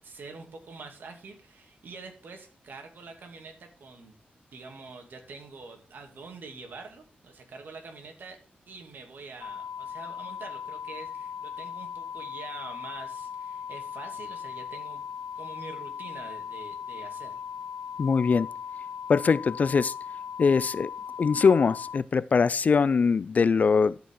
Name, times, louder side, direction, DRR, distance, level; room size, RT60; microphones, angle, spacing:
voice 1, 0.0-4.2 4.5-8.4 8.7-15.0 15.4-17.4, right 4 dB, 75° right, 2.5 m, -45 dB
sound 1, 9.4-22.0, left 7 dB, 85° left, 0.6 m, -38 dB
voice 2, 18.0-18.5 19.1-19.9 20.4-20.9 21.2-24.0, left 5 dB, 50° left, 0.3 m, -22 dB
13.0 x 5.2 x 3.7 m
wide cardioid pair, 95°, 3 cm